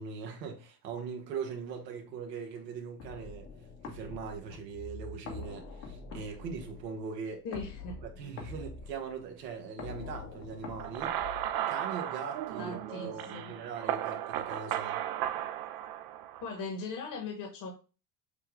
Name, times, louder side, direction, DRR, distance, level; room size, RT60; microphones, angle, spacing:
voice 1, 0.0-3.5 3.8-7.6 8.0-11.2 11.6-15.0, right 6 dB, 85° right, 1.2 m, -40 dB
sound 1, 3.0-12.0, left 4 dB, 75° left, 1.6 m, -45 dB
voice 2, 7.4-8.0 12.6-13.5 16.4-17.7, left 4 dB, 40° left, 1.3 m, -39 dB
sound 2, 10.8-16.6, right 12 dB, 50° right, 0.6 m, -35 dB
6.7 x 2.3 x 3.2 m
hypercardioid pair, 95°, 49 cm